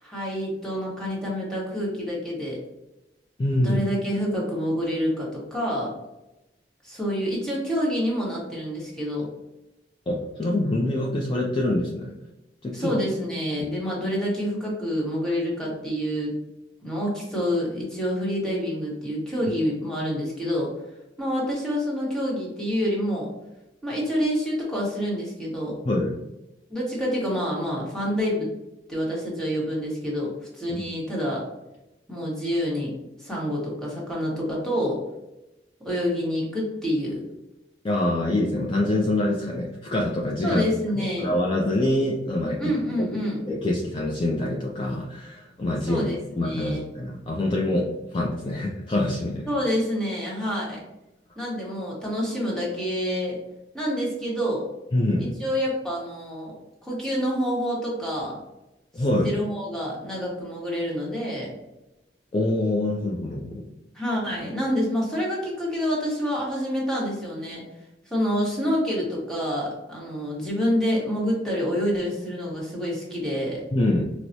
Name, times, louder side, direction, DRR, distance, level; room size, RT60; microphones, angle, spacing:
voice 1, 0.0-2.6 3.6-5.9 6.8-9.3 12.7-16.3 16.8-20.7 21.2-23.3 23.8-25.8 26.7-28.5 28.9-31.4 32.1-32.9 33.2-35.0 35.8-37.2 40.4-41.3 42.6-43.4 45.9-46.9 49.5-50.8 51.4-53.4 53.7-54.6 55.2-56.5 56.8-58.4 59.0-61.5 63.9-67.6 68.1-73.6, equal, 5° left, -5 dB, 1.0 m, -27 dB
voice 2, 3.4-3.8 10.1-12.1 12.6-13.0 13.6-13.7 25.9-26.1 30.7-30.8 37.8-40.7 41.0-42.7 43.0-46.1 46.4-49.5 54.9-55.3 58.9-59.4 62.3-63.7 73.7-74.0, left 1 dB, 30° left, -2 dB, 0.3 m, -25 dB
4.5 x 2.0 x 2.6 m, 0.95 s
head